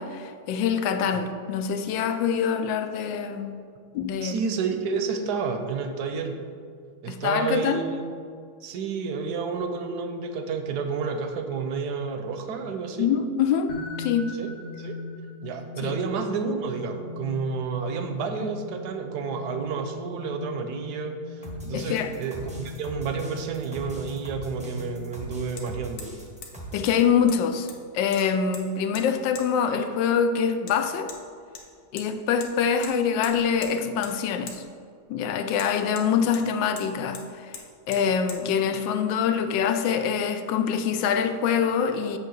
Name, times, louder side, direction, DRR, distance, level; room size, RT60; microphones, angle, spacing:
voice 1, 0.0-3.5 3.9-4.4 7.1-7.8 13.0-14.4 15.8-15.9 21.7-22.1 26.7-27.7 27.9-31.1 31.9-34.6 35.1-37.5 37.9-42.2, left 7 dB, 85° left, 8 dB, 1.3 m, -25 dB
voice 2, 4.2-6.4 7.0-8.1 8.6-13.1 14.3-15.0 15.4-26.1, right 5 dB, 70° right, 6 dB, 1.1 m, -30 dB
sound 1, 13.7-25.4, left 4 dB, 40° left, 1.4 m, -41 dB
sound 2, 21.4-27.0, right 1 dB, 5° right, 0.5 m, -41 dB
Hammer, 25.6-25.7 26.0-26.2 26.4-26.5 26.9-27.0 27.3-27.8 28.1-28.6 29.0-29.1 29.4-29.5 30.7-30.8 31.1-31.2 31.6-32.1 32.4-32.5 32.8-32.9 33.2-33.7 34.0-34.2 34.5-34.6 35.6-36.5 36.8-36.9 37.1-37.3 37.5-37.7 37.9-38.0 38.3-38.4, left 5 dB, 60° left, 1.3 m, -41 dB
8.4 x 3.3 x 6.3 m, 2.2 s
omnidirectional pair, 1.9 m